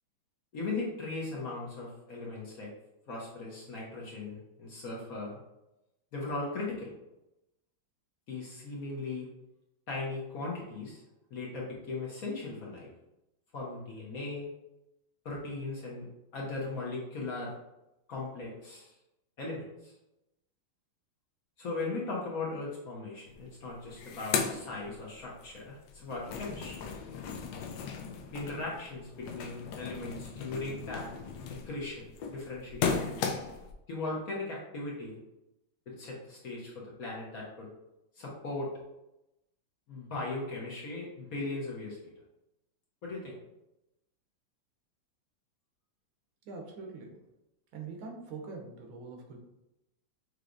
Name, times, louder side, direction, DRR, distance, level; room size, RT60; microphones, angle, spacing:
voice 1, 0.5-2.7 3.1-5.4 6.1-6.9 8.3-9.3 9.9-11.0 11.3-12.9 13.5-14.5 15.2-16.0 16.3-17.5 18.1-18.9 19.4-19.9 21.6-26.8 28.3-31.1 31.6-33.2 33.9-35.2 35.9-37.7 38.2-38.7 39.9-42.1 43.0-43.4, left 3 dB, 55° left, -4 dB, 1.1 m, -38 dB
sound 1, 23.3-23.4 23.7-25.5 25.8-33.7, left 6 dB, 75° left, 0.9 m, -36 dB
voice 2, 46.4-47.2 47.7-49.4, right 4 dB, 85° right, 1 dB, 1.7 m, -43 dB
5.8 x 3.2 x 2.6 m, 0.91 s
omnidirectional pair, 2.2 m